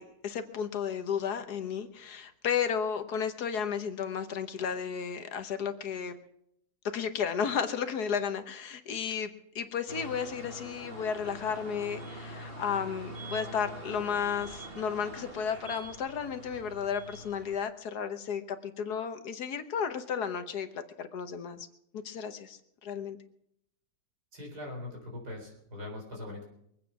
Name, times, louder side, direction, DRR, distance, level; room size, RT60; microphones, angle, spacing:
voice 1, 0.0-6.2 6.9-21.7 21.9-23.2, left 7 dB, 70° left, 9 dB, 1.5 m, -33 dB
sound 1, 9.9-17.6, right 1 dB, 35° right, 1.9 m, -44 dB
voice 2, 24.3-26.5, left 2 dB, 70° right, 0 dB, 4.8 m, -41 dB
23.0 x 8.7 x 5.9 m, 0.75 s
omnidirectional pair, 1.8 m